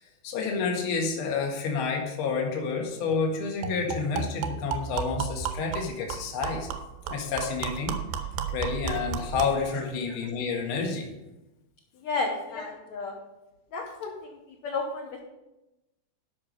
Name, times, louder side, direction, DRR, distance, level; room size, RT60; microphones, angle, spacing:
voice 1, 0.0-6.7 7.1-8.0 8.5-11.1, left 5 dB, 55° left, 0 dB, 1.6 m, -29 dB
sound 1, 2.7-2.8 3.1-3.2 3.6-9.7, right 6 dB, 85° right, 3.0 m, -33 dB
voice 2, 12.0-13.1 13.7-15.2, left 3 dB, 70° left, -1 dB, 1.8 m, -33 dB
12.0 x 6.0 x 5.4 m, 0.97 s
omnidirectional pair, 4.9 m